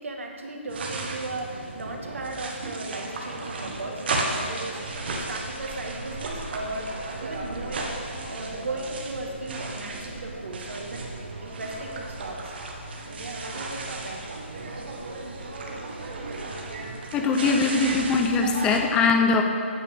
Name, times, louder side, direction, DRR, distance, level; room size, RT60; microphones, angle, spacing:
voice 1, 0.0-8.0 8.3-11.1 11.4-12.5 13.0-14.2, right 2 dB, 75° right, 1 dB, 1.4 m, -36 dB
sound 1, 0.7-18.8, right 2 dB, 50° right, 1.2 m, -34 dB
voice 2, 17.1-19.4, left 4 dB, 10° left, 4 dB, 0.5 m, -21 dB
9.2 x 8.1 x 3.5 m, 2.4 s
hypercardioid pair, 160°, 7 cm